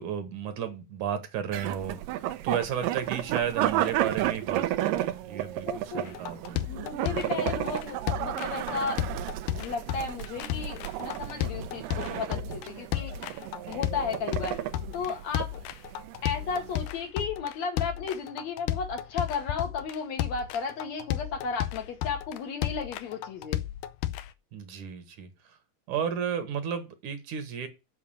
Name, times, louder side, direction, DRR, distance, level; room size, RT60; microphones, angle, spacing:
voice 1, 0.0-6.6 24.5-25.3 25.9-27.7, right 8 dB, 70° right, 8 dB, 2.5 m, -33 dB
sound 1, 1.5-16.8, right 13 dB, 85° right, 2.3 m, -33 dB
voice 2, 5.7-6.1 6.7-9.0 9.5-14.6 14.9-15.6 16.2-23.6, left 5 dB, 60° left, 4 dB, 2.4 m, -34 dB
sound 2, 6.1-24.3, left 13 dB, 80° left, 2.0 m, -33 dB
7.4 x 5.8 x 7.1 m, 0.27 s
omnidirectional pair, 3.8 m